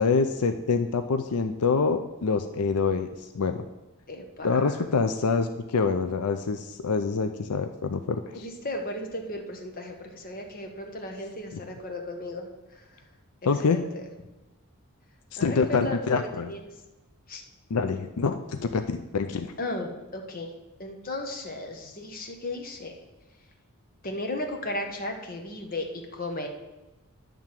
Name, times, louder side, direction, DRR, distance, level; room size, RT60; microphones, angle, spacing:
voice 1, 0.0-3.6 4.4-8.5 13.5-13.8 15.3-16.5 17.7-19.5, left 5 dB, 85° left, 7 dB, 0.5 m, -26 dB
voice 2, 4.1-4.7 8.3-13.0 13.6-14.0 15.4-16.6 17.3-17.4 19.6-20.5 20.8-23.0 24.0-26.5, left 1 dB, 40° left, 3 dB, 1.2 m, -35 dB
10.5 x 3.6 x 7.3 m, 1.1 s
head